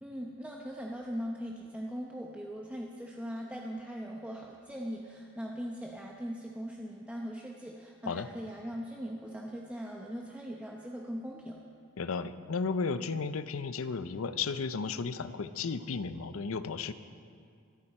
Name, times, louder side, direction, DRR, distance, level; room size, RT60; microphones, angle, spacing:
voice 1, 0.0-11.6, equal, 5° right, -2 dB, 0.8 m, -40 dB
voice 2, 12.0-16.9, left 5 dB, 85° left, 12 dB, 0.6 m, -34 dB
25.0 x 9.0 x 4.3 m, 2.3 s
head